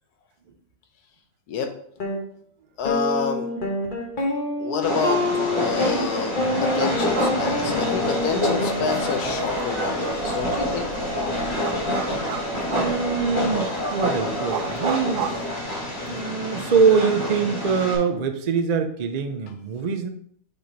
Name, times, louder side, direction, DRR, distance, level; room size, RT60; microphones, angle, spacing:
sound 1, 2.0-2.2 2.9-9.2, left 2 dB, 35° left, 1.1 m, -27 dB
voice 1, 2.8-3.5 4.6-5.3 5.6-10.9, left 6 dB, 80° left, 5 dB, 1.3 m, -28 dB
Train, 4.8-18.0, left 1 dB, 20° left, 1.6 m, -27 dB
sound 2, 7.0-16.2, right 7 dB, 85° right, 1.2 m, -35 dB
voice 2, 12.6-15.3 16.1-20.1, right 5 dB, 70° right, 7 dB, 0.4 m, -23 dB
5.4 x 4.2 x 4.5 m, 0.65 s
omnidirectional pair, 1.6 m